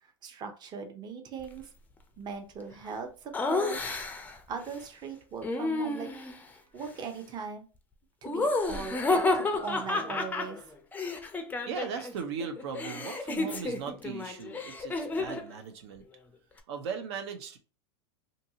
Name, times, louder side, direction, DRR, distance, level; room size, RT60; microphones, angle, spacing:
voice 1, 0.2-1.7 2.2-3.8 4.5-6.1 6.7-7.6 8.2-10.6, right 5 dB, 30° right, 5 dB, 0.7 m, -39 dB
Laughter, 3.3-4.4 5.4-6.4 8.2-12.1 12.4-15.5, left 3 dB, 10° left, 0.4 m, -31 dB
voice 2, 11.7-16.0 16.7-17.6, right 6 dB, 70° right, 6 dB, 0.6 m, -38 dB
2.7 x 2.6 x 2.7 m, 0.35 s
hypercardioid pair, 115°, 15 cm